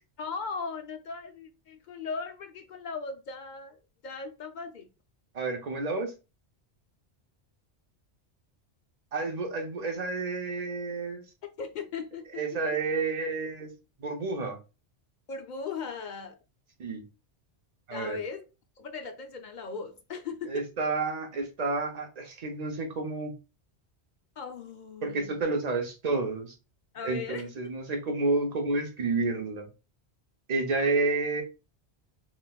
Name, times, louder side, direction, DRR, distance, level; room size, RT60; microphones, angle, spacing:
voice 1, 0.2-4.9 11.6-12.6 15.3-16.4 17.9-18.5 18.8-20.7 24.4-25.4 26.9-27.5, left 5 dB, 55° left, 0.5 m, -38 dB
voice 2, 5.3-6.1 9.1-11.2 12.4-13.7 14.0-14.6 16.8-17.0 17.9-18.2 20.5-23.3 25.0-26.5 27.0-29.7 30.5-31.4, right 3 dB, 40° right, 0.8 m, -30 dB
3.9 x 2.5 x 2.3 m
omnidirectional pair, 1.1 m